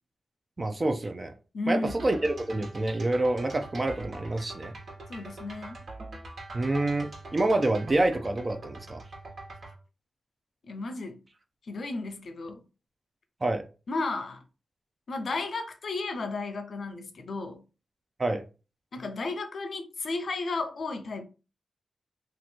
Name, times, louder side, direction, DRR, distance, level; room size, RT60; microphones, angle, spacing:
voice 1, 0.6-1.3 1.7-4.7 6.5-9.0 13.4-13.6 18.2-18.4, right 2 dB, 35° right, 0.5 m, -27 dB
voice 2, 1.5-2.0 5.1-5.8 10.6-11.2 11.7-12.6 13.9-14.4 15.1-17.6 18.9-21.2, left 3 dB, 70° left, 0.7 m, -33 dB
sound 1, 1.9-9.7, right 2 dB, 70° right, 1.4 m, -43 dB
2.9 x 2.5 x 4.3 m
cardioid pair, 65°, 0 cm